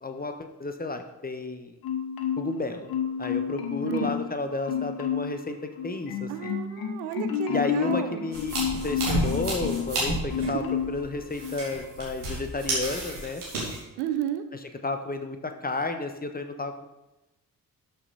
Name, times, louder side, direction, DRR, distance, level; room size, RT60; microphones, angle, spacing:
voice 1, 0.0-1.8 2.4-2.9 3.2-6.5 7.5-13.4 14.8-16.8, left 3 dB, 20° left, 7 dB, 1.2 m, -32 dB
Marimba xylophone, 1.8-2.6 2.9-4.3 4.7-5.4 5.8-9.9 10.3-11.0 11.4-11.6, left 8 dB, 50° left, 1.3 m, -30 dB
voice 2, 3.8-4.2 6.3-8.2 10.5-10.8 14.0-14.4, right 11 dB, 70° right, 10 dB, 0.8 m, -32 dB
sound 1, 8.3-13.8, right 1 dB, 85° right, 2.5 m, -31 dB
12.5 x 6.2 x 4.1 m, 0.99 s
figure-of-eight pair, 40°, 45 cm